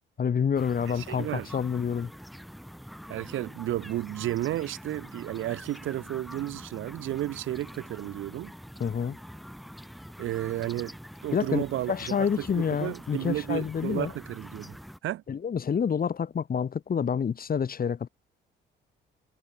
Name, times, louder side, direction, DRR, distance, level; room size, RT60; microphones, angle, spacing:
voice 1, 0.2-2.1 8.8-9.2 11.3-11.6 11.9-14.1 15.3-18.1, left 7 dB, 45° left, 4.3 m, -28 dB
sound 1, 0.5-15.0, equal, ahead, 4.8 m, -45 dB
voice 2, 0.9-1.6 3.1-8.5 10.2-11.0 11.2-15.2, right 14 dB, 85° right, 5.5 m, -33 dB
cardioid pair, 90°, 20 cm